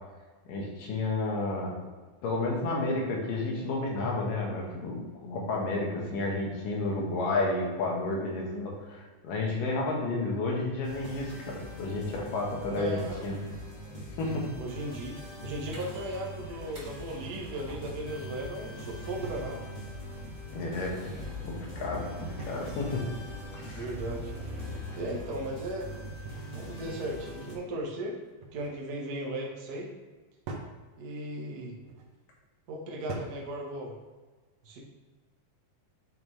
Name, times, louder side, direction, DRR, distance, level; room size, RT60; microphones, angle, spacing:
voice 1, 0.5-1.7 2.2-13.4 14.2-14.5 15.7-15.8 20.5-21.1 21.4-23.0 23.5-23.9, left 2 dB, 90° left, -2 dB, 3.0 m, -31 dB
sound 1, 10.8-27.6, equal, 20° left, 1.0 m, -43 dB
voice 2, 12.7-13.4 14.6-19.6 23.7-24.3 25.0-25.9 26.5-28.2 28.5-29.9 31.0-31.7 32.7-33.9 34.6-34.8, right 1 dB, 55° right, -1 dB, 1.0 m, -36 dB
sound 2, 15.7-24.8, left 1 dB, 40° right, 2.3 m, -45 dB
sound 3, 19.2-19.5 20.9-21.5 22.4-22.9 24.5-25.0 26.2-26.7 28.2-28.8 30.5-30.7 31.8-32.1 33.1-33.5, right 3 dB, 85° right, 2.6 m, -43 dB
8.3 x 5.5 x 3.2 m, 1.3 s
omnidirectional pair, 3.7 m